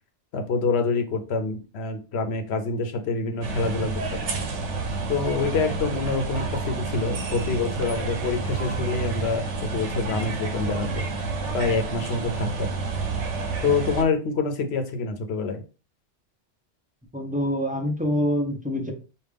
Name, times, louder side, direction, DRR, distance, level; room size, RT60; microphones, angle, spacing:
voice 1, 0.3-4.3 5.1-11.0 11.5-12.7 13.6-15.6, left 4 dB, 65° left, 5 dB, 1.0 m, -26 dB
sound 1, 3.4-14.0, right 3 dB, 80° right, 1.1 m, -29 dB
voice 2, 17.1-18.9, equal, 10° right, 2 dB, 0.7 m, -25 dB
5.2 x 2.4 x 3.4 m, 0.34 s
omnidirectional pair, 1.2 m